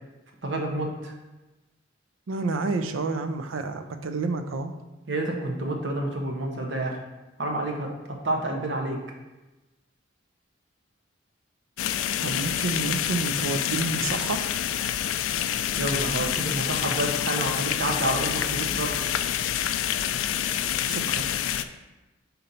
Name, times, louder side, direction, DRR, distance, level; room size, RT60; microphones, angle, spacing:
voice 1, 0.4-1.1 5.1-7.0 7.4-7.9 8.2-9.0 15.8-19.1, right 1 dB, 65° right, 1 dB, 0.9 m, -29 dB
voice 2, 2.3-4.7 12.2-14.4 20.9-21.3, right 3 dB, 90° right, 8 dB, 0.5 m, -29 dB
sound 1, 11.8-21.6, left 10 dB, 85° left, 0.3 m, -27 dB
4.3 x 4.0 x 5.4 m, 1.1 s
head